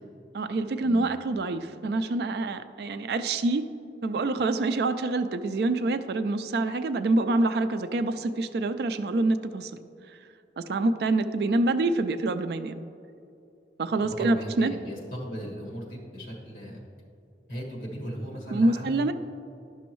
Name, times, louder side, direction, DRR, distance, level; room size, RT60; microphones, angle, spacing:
voice 1, 0.3-3.7 4.0-9.8 10.6-12.7 13.8-14.7 18.5-19.1, right 2 dB, 65° right, 10 dB, 0.3 m, -26 dB
voice 2, 14.1-16.8 17.5-19.0, equal, 50° left, -2 dB, 1.6 m, -37 dB
11.0 x 6.1 x 3.0 m, 2.6 s
head